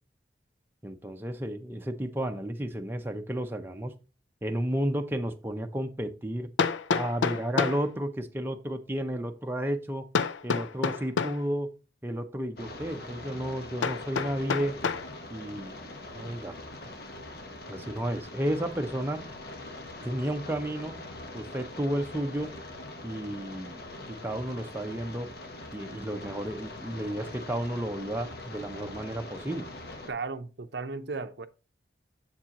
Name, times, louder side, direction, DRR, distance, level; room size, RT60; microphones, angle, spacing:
voice 1, 0.8-3.9 4.4-6.5 6.9-10.0 10.4-11.7 12.0-14.7 15.3-16.5 16.9-17.0 17.7-19.2 20.0-20.9 21.3-22.5 23.0-23.8 24.2-25.3 25.7-29.7, right 1 dB, 10° right, 0.6 m, -32 dB
Hammer, 5.0-5.1 6.6-7.9 10.1-11.4 13.8-15.1, left 5 dB, 90° left, 0.5 m, -28 dB
Heavy Rain, 12.6-30.1, left 2 dB, 55° left, 1.1 m, -43 dB
voice 2, 30.1-31.5, right 4 dB, 65° right, 0.6 m, -35 dB
7.4 x 7.3 x 2.9 m
head